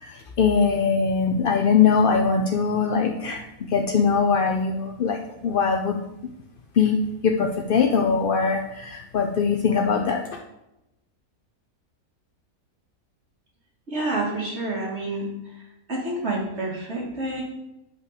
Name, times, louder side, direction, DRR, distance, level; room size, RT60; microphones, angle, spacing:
voice 1, 0.0-3.4 3.7-5.2 5.4-6.0 6.8-7.0 7.2-10.2, left 5 dB, 50° left, 3 dB, 0.6 m, -21 dB
voice 2, 13.9-15.3 15.9-17.4, right 2 dB, 45° right, -3 dB, 2.8 m, -28 dB
8.2 x 5.6 x 6.7 m, 0.92 s
omnidirectional pair, 1.6 m